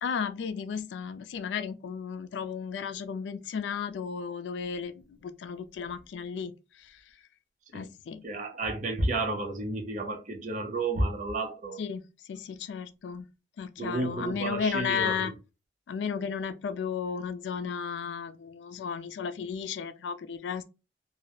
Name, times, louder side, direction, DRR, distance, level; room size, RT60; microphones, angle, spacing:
voice 1, 0.0-6.5 6.8-7.0 7.7-8.2 11.8-12.0 12.3-13.3 13.6-15.3 15.9-20.6, left 6 dB, 80° left, 0.3 m, -34 dB
voice 2, 8.2-11.8 13.8-15.3, right 2 dB, 45° right, 0.6 m, -31 dB
2.2 x 2.0 x 2.8 m
head